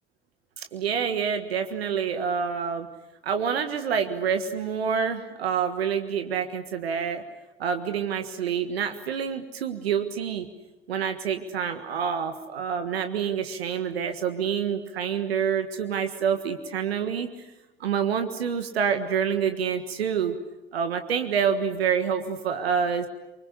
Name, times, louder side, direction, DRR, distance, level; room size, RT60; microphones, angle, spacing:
voice 1, 0.6-2.9 3.2-7.2 7.6-10.5 10.9-17.3 17.8-20.4 20.7-23.1, right 7 dB, 85° right, 8 dB, 1.6 m, -27 dB
26.5 x 24.5 x 8.3 m, 1.0 s
figure-of-eight pair, 50°, 30 cm